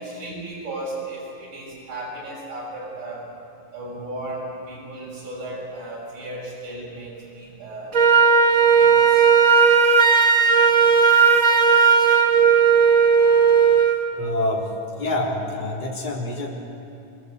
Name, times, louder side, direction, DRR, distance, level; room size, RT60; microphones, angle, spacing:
voice 1, 0.0-3.3 3.7-8.3 8.8-9.3, right 1 dB, 60° right, -5 dB, 8.2 m, -35 dB
Wind instrument woodwind instrument, 7.9-14.0, right 6 dB, 80° right, 0.7 m, -15 dB
voice 2, 14.1-14.7 15.0-16.5, left 2 dB, 15° left, -4 dB, 3.8 m, -26 dB
25.0 x 20.5 x 8.4 m, 2.5 s
omnidirectional pair, 4.0 m